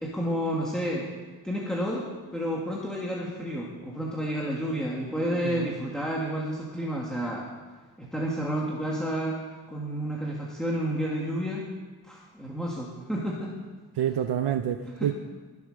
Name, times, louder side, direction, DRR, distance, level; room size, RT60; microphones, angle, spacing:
voice 1, 0.0-1.1 1.4-7.5 8.0-11.7 12.0-13.5 14.8-15.1, equal, ahead, -4 dB, 1.9 m, -30 dB
voice 2, 14.0-15.1, right 10 dB, 85° right, 8 dB, 0.8 m, -28 dB
23.5 x 8.5 x 6.5 m, 1.4 s
wide cardioid pair, 175°, 39 cm